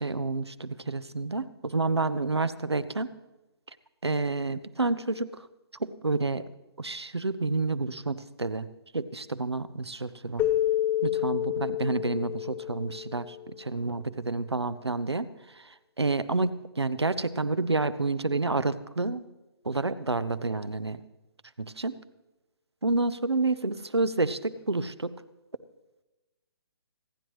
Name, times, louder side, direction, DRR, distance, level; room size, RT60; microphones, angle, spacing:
voice 1, 0.0-3.1 4.0-5.5 5.8-6.4 6.8-8.7 8.9-10.5 11.0-15.3 16.0-19.2 19.6-21.0 21.6-21.9 22.8-25.1, right 3 dB, 90° right, 13 dB, 0.8 m, -29 dB
Keyboard (musical), 10.4-13.6, left 13 dB, 10° left, 0.4 m, -29 dB
26.0 x 9.9 x 3.1 m, 1.1 s
figure-of-eight pair, 135°, 13 cm